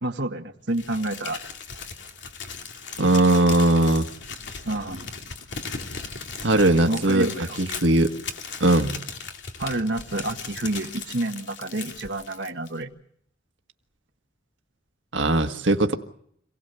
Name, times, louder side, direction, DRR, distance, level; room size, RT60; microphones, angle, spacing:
voice 1, 0.0-1.4 4.6-5.1 6.9-7.6 9.6-12.9, right 1 dB, 70° right, 3 dB, 1.5 m, -29 dB
Crumpling crinkling, 0.7-12.8, left 5 dB, 75° left, 2.5 m, -38 dB
voice 2, 3.0-4.1 6.4-7.3 7.6-8.1 8.6-9.0 15.1-15.9, right 2 dB, 90° right, 6 dB, 1.6 m, -19 dB
27.5 x 18.0 x 6.9 m, 0.68 s
head